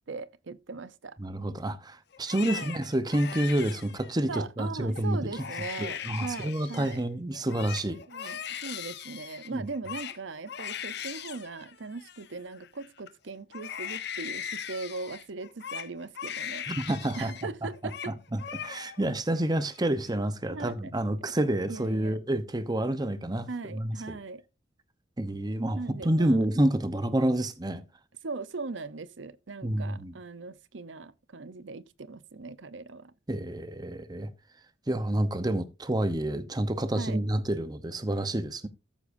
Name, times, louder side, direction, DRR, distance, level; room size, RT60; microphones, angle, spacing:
voice 1, 0.1-1.2 2.5-2.7 4.3-7.0 8.1-16.6 17.2-18.2 20.5-20.9 21.7-22.2 23.5-24.4 25.8-26.4 28.2-33.1 36.9-37.2, right 3 dB, 75° right, 0.7 m, -39 dB
voice 2, 1.2-5.4 5.8-8.4 9.5-9.7 16.7-17.3 18.1-24.2 25.2-27.8 29.6-30.1 33.3-34.3 34.9-38.7, right 1 dB, 20° right, 0.8 m, -29 dB
Crying sobbing, 2.1-4.4 4.9-5.1 5.3-7.0 7.3-13.1 13.5-17.5 17.7-18.1 18.4-19.1 19.5-20.1, left 9 dB, 60° left, 1.0 m, -39 dB
13.5 x 8.2 x 2.6 m
head